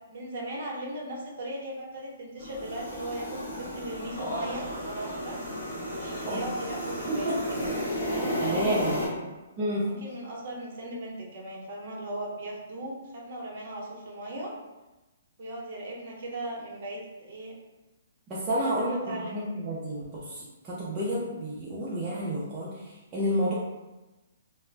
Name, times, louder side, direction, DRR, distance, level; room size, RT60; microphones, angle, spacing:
voice 1, 0.1-5.4 6.0-7.7 8.0-9.3 9.8-14.5 15.4-17.6 18.6-19.4, right 1 dB, 45° right, -2 dB, 0.7 m, -38 dB
sound 1, 2.4-9.1, equal, 50° left, 1.3 m, -33 dB
voice 2, 8.1-9.0 9.6-9.9 18.3-23.5, equal, 15° right, -8 dB, 0.3 m, -30 dB
2.3 x 2.0 x 3.2 m, 1.1 s
hypercardioid pair, 175°, 0 cm